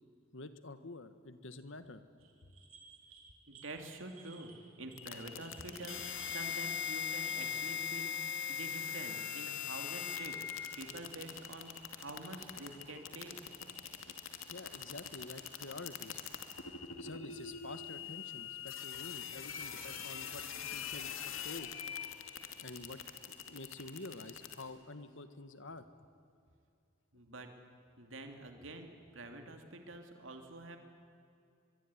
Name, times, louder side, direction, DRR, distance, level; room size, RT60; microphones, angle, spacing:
voice 1, 0.3-2.0 14.5-16.2 17.0-21.7 22.6-23.0 23.4-25.8, left 2 dB, 65° left, 11 dB, 1.6 m, -48 dB
sound 1, 2.2-7.7, right 5 dB, 85° right, 4.0 m, -57 dB
voice 2, 3.5-4.5 4.8-13.4 27.1-27.5 28.0-30.8, right 2 dB, 70° right, 5 dB, 2.8 m, -47 dB
sound 2, 5.0-24.6, left 8 dB, 85° left, 2.6 m, -42 dB
23.5 x 23.0 x 9.9 m, 2.5 s
head